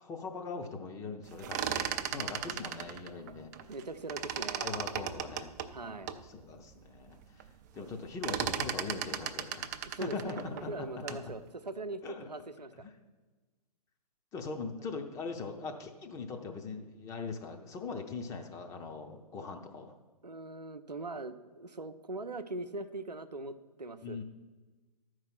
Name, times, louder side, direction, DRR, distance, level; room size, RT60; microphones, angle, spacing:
voice 1, 0.0-3.5 4.6-5.5 5.8-5.9 6.3-7.5 7.7-9.7 10.0-11.3 12.0-12.3 12.8-12.9 14.3-19.9 24.0-24.2, left 4 dB, 15° left, 4 dB, 0.7 m, -41 dB
sound 1, 1.3-3.8 4.1-6.2 6.7-6.8 7.1-7.5 7.8-11.3, right 9 dB, 25° right, 0.4 m, -36 dB
voice 2, 3.7-4.7 5.7-6.1 7.8-7.9 9.8-12.9 20.2-24.2, right 2 dB, 85° right, 8 dB, 0.6 m, -41 dB
12.0 x 4.7 x 5.9 m, 1.3 s
figure-of-eight pair, 120°, 21 cm